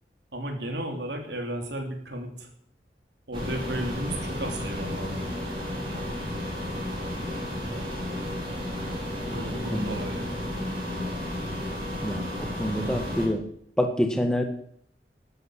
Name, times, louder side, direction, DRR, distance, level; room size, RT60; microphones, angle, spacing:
voice 1, 0.3-2.5 3.3-5.3 9.3-10.4, right 1 dB, 75° right, 3 dB, 3.0 m, -34 dB
sound 1, 3.3-13.3, left 1 dB, 25° right, 5.5 m, -32 dB
voice 2, 9.7-10.0 12.0-13.5 13.8-14.4, equal, 5° left, 5 dB, 1.7 m, -27 dB
12.5 x 9.5 x 7.7 m, 0.65 s
head